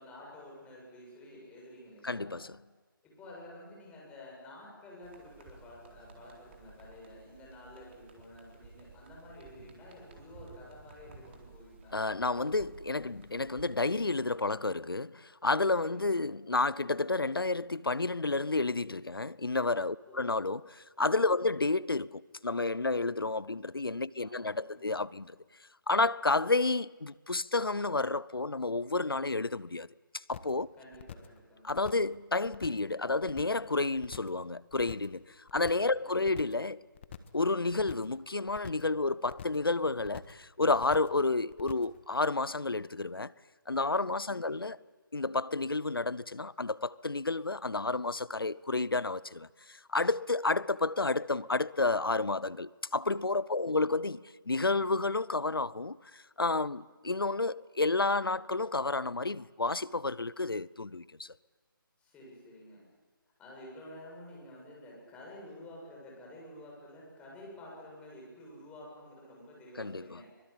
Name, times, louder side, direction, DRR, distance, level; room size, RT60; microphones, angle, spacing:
voice 1, 0.0-2.3 3.0-12.0 15.8-16.2 20.0-20.2 21.4-21.7 24.2-25.0 30.8-31.7 36.0-36.3 44.4-44.7 53.6-53.9 62.0-62.8 63.4-70.3, left 1 dB, 10° left, 7.7 m, -51 dB
voice 2, 2.0-2.5 11.9-25.4 25.9-29.9 30.1-30.7 31.6-35.2 35.5-36.8 37.3-43.3 43.7-44.8 45.1-54.2 54.5-61.3 69.8-70.2, left 3 dB, 90° left, 0.7 m, -30 dB
sound 1, 5.0-14.1, right 3 dB, 35° right, 4.1 m, -55 dB
sound 2, 30.3-30.6 30.9-31.4 31.7-32.1 32.4-32.9 33.2-33.7 34.0-34.4 34.7-35.2 35.5-35.9 36.2-36.7 37.0-37.4 37.7-38.2 38.5-38.9 39.2-39.7 40.0-40.4 40.7-41.2 41.5-42.0, left 9 dB, 30° left, 1.5 m, -47 dB
24.5 x 23.0 x 8.7 m
figure-of-eight pair, 150°, 12 cm